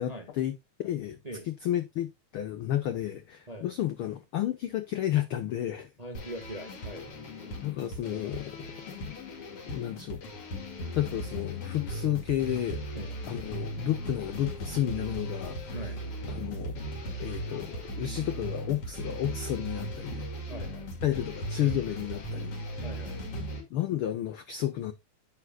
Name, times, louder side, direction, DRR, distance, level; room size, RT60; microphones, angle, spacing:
voice 1, 0.0-1.2 1.5-5.9 7.6-8.7 9.0-9.1 9.7-10.2 10.9-12.8 13.3-15.8 16.3-16.8 17.2-20.3 21.0-22.6 23.7-24.9, left 12 dB, 70° left, 1.3 m, -32 dB
voice 2, 6.0-7.1 12.9-13.2 15.7-16.0 20.5-20.9 22.8-23.2, right 1 dB, 20° right, 1.1 m, -41 dB
sound 1, 6.1-23.6, equal, 55° left, 3.1 m, -37 dB
9.5 x 8.3 x 2.3 m
omnidirectional pair, 3.4 m